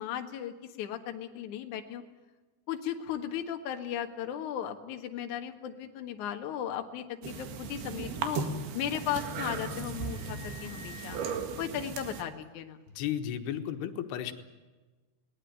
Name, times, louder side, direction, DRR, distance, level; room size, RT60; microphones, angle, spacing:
voice 1, 0.0-2.0 2.7-8.4 8.7-11.2 11.6-12.8, left 10 dB, 60° left, 5 dB, 2.7 m, -36 dB
sound 1, 7.2-12.2, right 5 dB, 75° right, 3.8 m, -36 dB
Wind instrument woodwind instrument, 8.6-12.4, left 6 dB, 25° right, 3.1 m, -53 dB
voice 2, 13.0-14.3, left 10 dB, 90° left, 7 dB, 3.4 m, -33 dB
21.0 x 19.0 x 9.3 m, 1.2 s
omnidirectional pair, 4.5 m